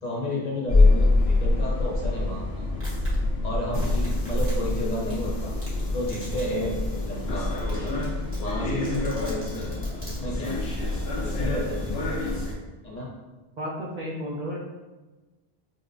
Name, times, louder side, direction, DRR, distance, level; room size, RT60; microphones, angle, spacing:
voice 1, 0.0-2.5 3.4-5.5 5.9-7.9 8.4-9.7 10.1-10.6 11.2-12.0 12.8-13.1, left 1 dB, 45° left, -4 dB, 0.7 m, -32 dB
sound 1, 0.7-12.5, left 2 dB, 70° left, 1.0 m, -25 dB
Domestic sounds home sounds, 2.8-3.1 3.8-4.7 5.1-5.2 5.6-5.8 6.1-6.4 6.7-6.8 7.2-7.3 7.5-8.0 8.3-10.2, equal, 15° right, 0.9 m, -44 dB
voice 2, 13.6-14.6, equal, 50° right, -5 dB, 0.7 m, -32 dB
5.3 x 2.1 x 2.5 m, 1.2 s
omnidirectional pair, 1.1 m